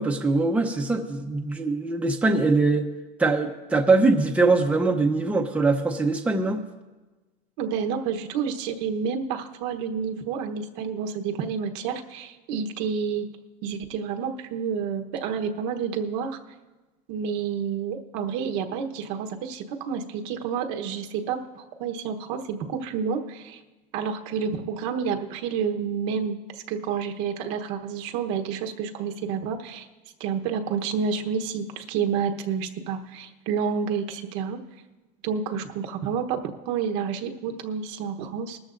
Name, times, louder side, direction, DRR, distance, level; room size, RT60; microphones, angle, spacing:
voice 1, 0.0-2.9 3.2-6.7, right 3 dB, 5° right, 2 dB, 0.8 m, -22 dB
voice 2, 7.6-13.3 13.6-16.4 17.1-23.6 23.9-26.4 26.7-29.9 30.2-34.6 35.2-38.6, right 6 dB, 75° right, 4 dB, 1.1 m, -29 dB
20.0 x 13.5 x 2.6 m, 1.2 s
cardioid pair, 145°, 20 cm